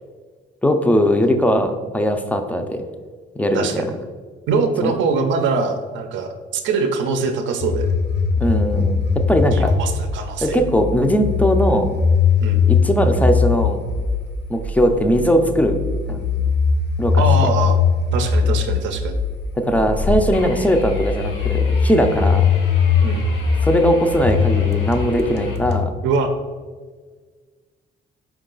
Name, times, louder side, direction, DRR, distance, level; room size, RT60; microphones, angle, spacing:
voice 1, 0.6-2.8 3.4-3.8 4.8-4.9 8.4-9.0 9.3-9.7 10.4-12.0 12.7-13.8 14.5-15.8 16.1-16.2 17.0-17.5 19.6-22.4 23.6-25.9, equal, 5° left, 6 dB, 0.4 m, -19 dB
voice 2, 3.5-3.9 4.5-7.9 9.5-10.6 12.4-12.6 17.2-17.8 18.1-19.2 23.0-23.3 26.0-26.3, right 4 dB, 70° right, 7 dB, 0.5 m, -23 dB
sound 1, 7.6-25.8, left 5 dB, 55° left, 0.6 m, -20 dB
sound 2, 20.3-25.6, left 2 dB, 85° left, 0.9 m, -37 dB
4.6 x 2.3 x 3.8 m, 1.5 s
cardioid pair, 90°, 20 cm